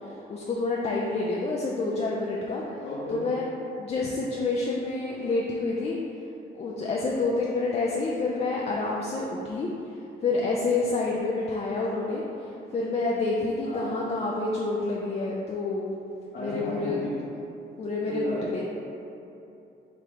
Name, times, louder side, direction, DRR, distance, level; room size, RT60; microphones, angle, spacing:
voice 1, 0.3-2.6 3.1-3.4 3.8-6.0 6.5-9.7 10.2-12.2 12.7-15.9 16.4-17.0 17.8-18.6, left 3 dB, 35° left, -3 dB, 0.4 m, -28 dB
voice 2, 2.5-3.3 13.6-13.9 16.3-17.1 18.1-18.6, left 1 dB, 65° left, -11 dB, 1.1 m, -35 dB
5.0 x 2.3 x 3.1 m, 2.8 s
cardioid pair, 90°, 20 cm